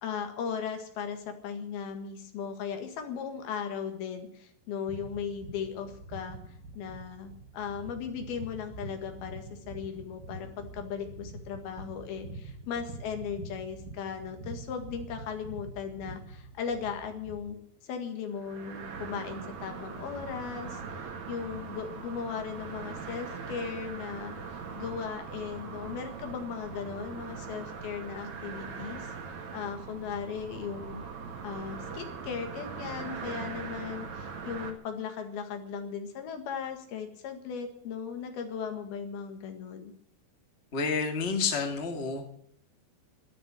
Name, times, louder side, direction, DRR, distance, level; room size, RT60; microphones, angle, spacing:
voice 1, 0.0-6.4 6.8-17.6 17.8-20.8 21.3-29.1 29.5-31.0 31.4-39.9, left 7 dB, 85° left, 6 dB, 3.7 m, -37 dB
sound 1, 4.9-17.5, right 3 dB, 85° right, 5.8 m, -45 dB
sound 2, 18.3-34.7, right 5 dB, 55° right, 3.1 m, -41 dB
voice 2, 40.7-42.3, left 5 dB, 25° left, 4 dB, 1.5 m, -29 dB
12.5 x 10.5 x 9.5 m, 0.68 s
omnidirectional pair, 4.3 m